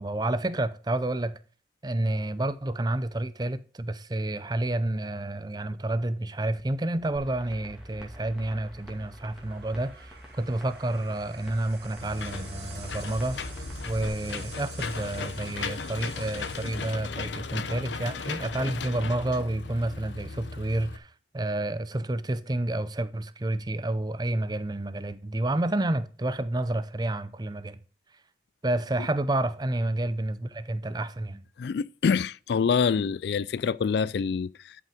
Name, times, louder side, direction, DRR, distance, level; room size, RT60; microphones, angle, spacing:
voice 1, 0.0-1.4 1.8-13.4 13.8-27.8 28.6-31.4, right 1 dB, 20° right, 0.6 m, -29 dB
sound 1, 6.9-17.0, right 4 dB, 60° right, 2.0 m, -48 dB
sound 2, 7.2-14.1, equal, 5° right, 2.3 m, -47 dB
Engine / Mechanisms, 12.0-21.0, left 4 dB, 80° left, 0.8 m, -36 dB
voice 2, 31.6-34.8, left 6 dB, 65° left, 0.3 m, -26 dB
11.0 x 5.6 x 5.1 m
head